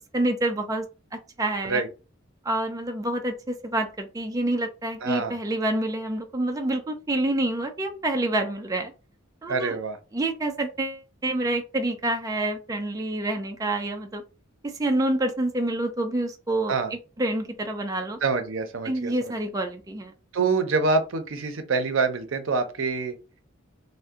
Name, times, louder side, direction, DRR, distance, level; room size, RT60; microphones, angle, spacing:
voice 1, 0.1-0.9 1.1-1.8 2.4-8.9 9.4-9.8 10.1-14.2 14.6-18.2 18.8-20.1, right 1 dB, 15° right, 4 dB, 0.4 m, -27 dB
voice 2, 5.0-5.3 9.5-10.0 16.7-16.9 18.2-19.3 20.3-23.2, right 4 dB, 75° right, 7 dB, 0.6 m, -26 dB
2.7 x 2.1 x 3.5 m, 0.31 s
head